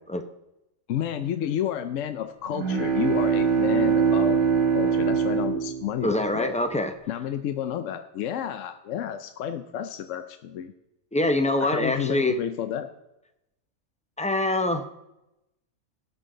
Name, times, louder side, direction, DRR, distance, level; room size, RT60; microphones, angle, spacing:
voice 1, 0.9-4.4 4.7-6.5 7.1-10.7 11.6-12.9, left 10 dB, 70° left, 9 dB, 0.9 m, -31 dB
sound 1, 2.5-6.5, right 6 dB, 40° right, 1.7 m, -23 dB
voice 2, 6.0-6.9 11.1-12.4 14.2-14.8, left 2 dB, 10° left, 6 dB, 0.3 m, -24 dB
17.0 x 6.4 x 3.8 m, 0.90 s
omnidirectional pair, 1.4 m